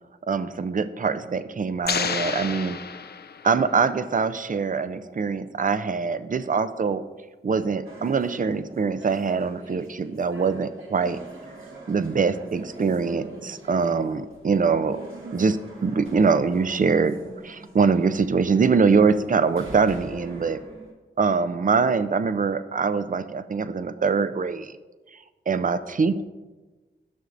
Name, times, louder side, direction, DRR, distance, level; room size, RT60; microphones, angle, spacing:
voice 1, 0.3-2.8 3.4-7.0 7.4-11.2 11.9-15.0 15.3-17.2 17.4-20.6 21.2-24.7 25.5-26.2, right 5 dB, 40° right, 12 dB, 0.5 m, -23 dB
sound 1, 1.9-3.7, left 6 dB, 50° left, 0.5 m, -30 dB
sound 2, 7.8-20.9, right 2 dB, 75° right, 1.7 m, -43 dB
12.5 x 6.5 x 2.6 m, 1.2 s
cardioid pair, 45°, 21 cm